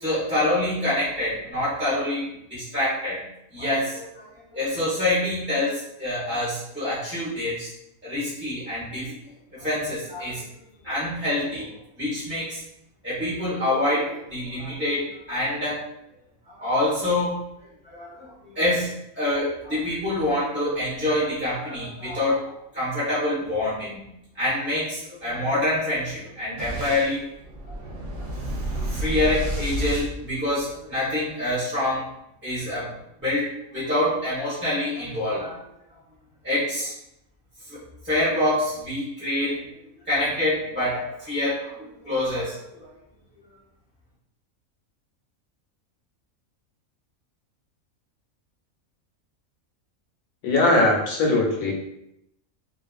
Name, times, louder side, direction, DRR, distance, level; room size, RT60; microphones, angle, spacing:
voice 1, 0.0-2.2 2.5-3.2 3.5-4.3 4.5-7.7 8.0-9.1 9.5-10.4 10.8-11.7 12.0-12.6 13.0-15.8 16.5-17.4 17.8-18.9 19.2-24.0 24.3-27.2 27.7-27.8 28.9-32.1 32.4-32.9 33.2-35.6 36.4-36.9 38.0-39.6 40.1-42.9, left 1 dB, 10° right, -11 dB, 0.5 m, -26 dB
Boom, 26.6-31.0, right 1 dB, 65° right, 0.8 m, -31 dB
voice 2, 50.4-51.7, left 2 dB, 80° left, 0 dB, 1.0 m, -20 dB
2.5 x 2.3 x 2.3 m, 0.80 s
omnidirectional pair, 1.5 m